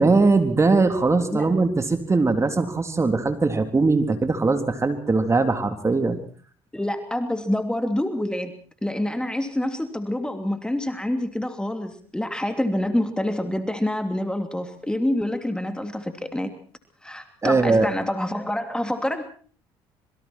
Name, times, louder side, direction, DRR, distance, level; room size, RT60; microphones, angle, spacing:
voice 1, 0.0-6.2 17.4-17.9, right 3 dB, 25° right, 7 dB, 3.5 m, -20 dB
voice 2, 6.7-8.5 8.8-16.5 17.0-19.2, left 1 dB, 5° left, 7 dB, 3.0 m, -27 dB
26.5 x 23.0 x 4.5 m, 0.43 s
hypercardioid pair, 70°, 12 cm